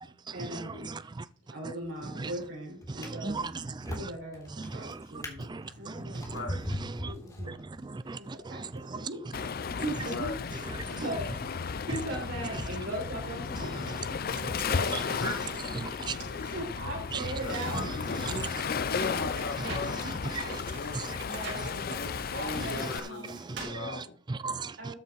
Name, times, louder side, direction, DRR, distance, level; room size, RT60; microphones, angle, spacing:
voice 1, 0.3-3.6 3.8-6.4 7.0-7.6 8.2-14.3 14.8-15.3 16.2-18.1 21.2-22.1 22.3-23.4 24.7-25.0, right 1 dB, 85° right, 6.1 m, -40 dB
Drawer open or close, 1.8-2.3 2.8-8.0 8.7-8.9, equal, 20° left, 3.1 m, -40 dB
voice 2, 3.0-3.5 3.8-4.1 4.6-5.0 5.4-6.4 6.9-7.1 7.5-7.6 7.8-8.5 8.9-9.0 10.8-10.9 14.3-14.8 15.8-16.2 18.2-18.5 20.0-20.6 20.9-21.2 23.5-24.0 24.3-24.8, right 4 dB, 25° right, 0.4 m, -37 dB
Waves surf, 9.3-23.0, left 5 dB, 50° left, 0.5 m, -34 dB
sound 1, 16.1-16.3 17.4-19.9 20.3-23.8, right 3 dB, 65° right, 5.0 m, -45 dB
voice 3, 17.3-18.5 18.9-21.6 21.9-24.2, left 3 dB, 75° left, 1.8 m, -39 dB
13.5 x 5.6 x 4.7 m
head